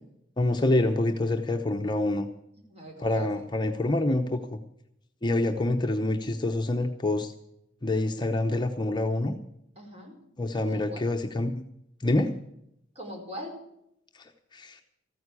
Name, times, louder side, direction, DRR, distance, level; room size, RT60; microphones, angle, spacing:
voice 1, 0.4-2.3 3.0-4.6 5.2-7.3 7.8-9.4 10.4-11.6 12.0-12.3 14.2-14.8, left 2 dB, 25° left, 4 dB, 0.7 m, -26 dB
voice 2, 2.7-3.3 9.8-10.2 10.6-11.1 12.9-13.6, equal, 35° right, 1 dB, 4.5 m, -42 dB
14.5 x 9.4 x 8.3 m, 0.79 s
head